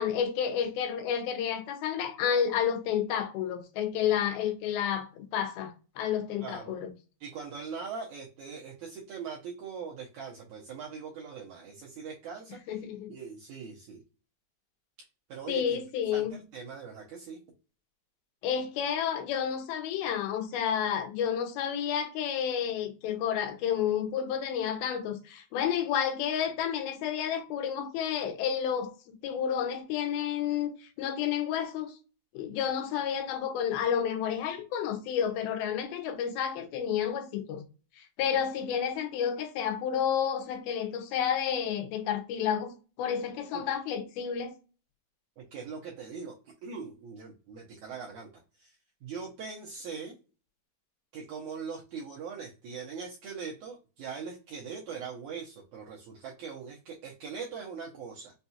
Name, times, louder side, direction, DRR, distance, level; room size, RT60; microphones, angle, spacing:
voice 1, 0.0-6.9 12.7-13.1 15.5-16.4 18.4-31.9 32.3-37.6 38.0-44.5, left 8 dB, 80° left, 2.6 m, -30 dB
voice 2, 6.4-6.8 7.2-12.6 13.1-14.0 15.3-15.8 16.1-17.4 43.5-43.7 45.4-48.3 48.6-48.8 49.0-50.2 51.1-58.3, right 5 dB, 80° right, 1.7 m, -41 dB
5.9 x 2.3 x 2.7 m
omnidirectional pair, 4.3 m